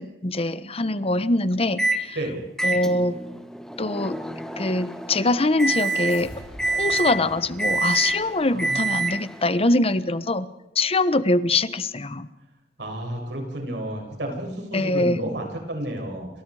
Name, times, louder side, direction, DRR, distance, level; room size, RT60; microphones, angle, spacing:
voice 1, 0.0-2.1 2.6-3.2 3.8-4.2 4.6-6.3 6.7-10.5 10.8-12.3 14.7-15.2, left 2 dB, 35° left, 14 dB, 1.1 m, -23 dB
Microwave oven, 1.8-2.1 2.6-9.4, right 2 dB, 5° left, 1.8 m, -27 dB
sound 1, 5.7-8.8, left 1 dB, 70° left, 6.0 m, -45 dB
voice 2, 8.5-8.8 12.8-16.3, right 1 dB, 70° right, 2 dB, 7.6 m, -31 dB
30.0 x 26.0 x 4.9 m, 0.97 s
head